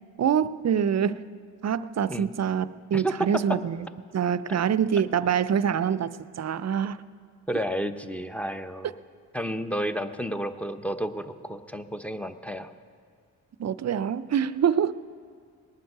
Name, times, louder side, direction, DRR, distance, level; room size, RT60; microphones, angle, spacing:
voice 1, 0.2-1.2 1.6-2.7 2.9-3.9 4.1-7.0 13.6-14.9, right 8 dB, 45° right, 15 dB, 0.5 m, -25 dB
voice 2, 7.5-8.9 9.3-12.7, equal, 5° left, 9 dB, 0.7 m, -31 dB
20.0 x 9.3 x 6.6 m, 2.1 s
cardioid pair, 80°, 39 cm